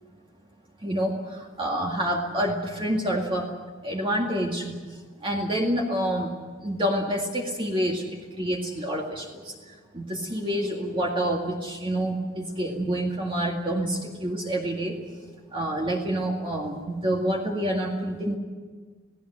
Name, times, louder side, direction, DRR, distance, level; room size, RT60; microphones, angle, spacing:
voice 1, 0.8-3.5 3.8-4.7 5.2-6.3 6.6-8.0 8.3-9.5 9.9-14.9 15.5-18.4, right 1 dB, 25° right, -1 dB, 2.1 m, -27 dB
28.0 x 17.5 x 7.9 m, 1.5 s
head